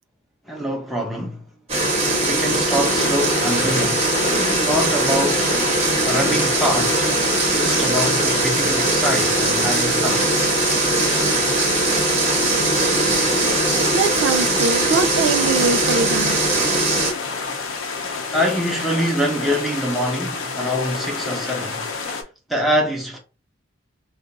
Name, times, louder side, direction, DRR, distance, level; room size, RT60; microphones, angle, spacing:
voice 1, 0.5-1.4 2.2-5.6 6.0-10.3 18.0-21.9 22.5-23.2, equal, ahead, 0.8 m, -25 dB
sound 1, 1.7-17.1, right 2 dB, 30° right, 1.0 m, -20 dB
sound 2, 2.8-22.2, left 4 dB, 85° left, 0.6 m, -29 dB
voice 2, 13.9-16.4, right 4 dB, 75° right, 0.3 m, -23 dB
2.5 x 2.3 x 3.9 m
head